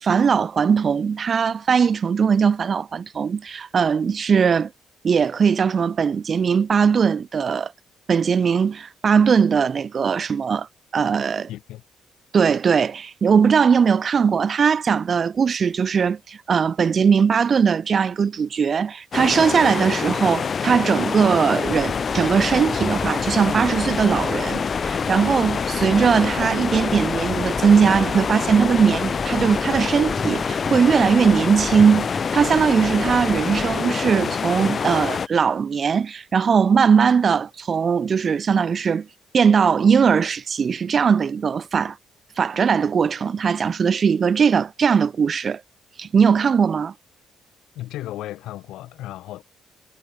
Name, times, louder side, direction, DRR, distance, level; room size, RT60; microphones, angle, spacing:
voice 1, 0.0-4.7 5.0-7.7 8.1-10.7 10.9-11.5 12.3-39.1 39.3-42.0 42.4-45.6 46.0-46.9, right 6 dB, 45° right, 0.8 m, -19 dB
voice 2, 11.5-11.8 47.7-49.4, left 15 dB, 90° left, 3.9 m, -35 dB
sound 1, 19.1-35.3, left 6 dB, 45° left, 1.7 m, -26 dB
sound 2, 21.6-33.8, left 3 dB, 20° left, 2.3 m, -36 dB
cardioid pair, 90°, 0 cm